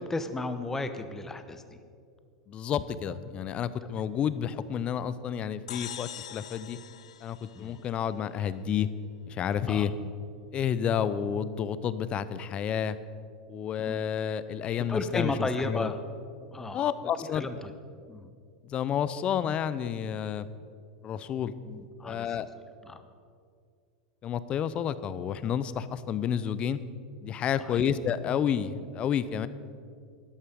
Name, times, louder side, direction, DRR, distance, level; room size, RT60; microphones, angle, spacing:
voice 1, 0.0-1.6 7.5-7.8 9.7-9.9 13.8-14.0 14.9-16.0 16.4-16.8 17.2-17.7 18.1-18.3 21.6-22.4 22.8-23.0 27.6-27.9, left 2 dB, 10° left, 10 dB, 1.0 m, -34 dB
voice 2, 2.5-6.8 7.2-8.9 9.3-9.9 10.5-13.0 13.5-15.3 15.7-15.9 16.7-17.5 18.6-20.5 21.0-21.5 22.0-22.5 24.2-26.8 27.2-29.5, left 8 dB, 35° left, 15 dB, 0.6 m, -30 dB
sound 1, 5.7-8.3, left 10 dB, 90° left, 0.4 m, -43 dB
13.0 x 11.0 x 5.2 m, 2.3 s
hypercardioid pair, 115°, 3 cm